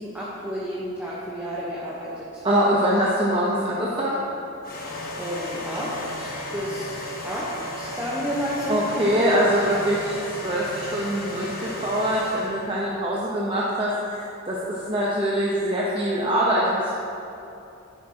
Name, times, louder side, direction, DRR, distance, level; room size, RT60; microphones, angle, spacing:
voice 1, 0.0-2.4 5.2-8.9, equal, 5° right, -7 dB, 1.0 m, -31 dB
voice 2, 2.4-4.3 8.7-16.9, equal, 25° right, -6 dB, 0.9 m, -23 dB
sound 1, 4.6-12.8, left 1 dB, 45° left, 1.3 m, -34 dB
10.5 x 10.0 x 2.9 m, 2.8 s
head